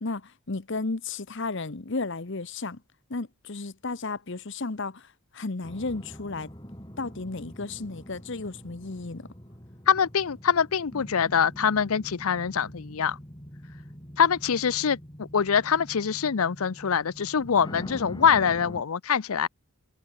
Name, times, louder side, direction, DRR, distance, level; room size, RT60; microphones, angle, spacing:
voice 1, 0.0-2.8 3.1-6.5 7.0-9.3, left 3 dB, 55° left, 1.0 m, -33 dB
sound 1, 5.6-18.8, equal, 20° left, 6.4 m, -44 dB
voice 2, 9.9-13.2 14.2-15.0 15.3-19.5, left 7 dB, 75° left, 0.6 m, -24 dB
head